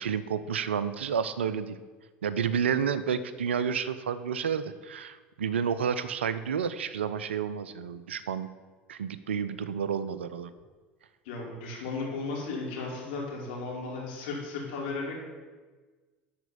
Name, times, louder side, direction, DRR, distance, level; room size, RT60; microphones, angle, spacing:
voice 1, 0.0-1.8 2.2-8.5 8.9-10.5, right 7 dB, 75° right, 14 dB, 0.5 m, -30 dB
voice 2, 11.2-15.2, left 3 dB, 60° left, -2 dB, 2.9 m, -35 dB
12.0 x 4.3 x 7.1 m, 1.4 s
figure-of-eight pair, 70°, 6 cm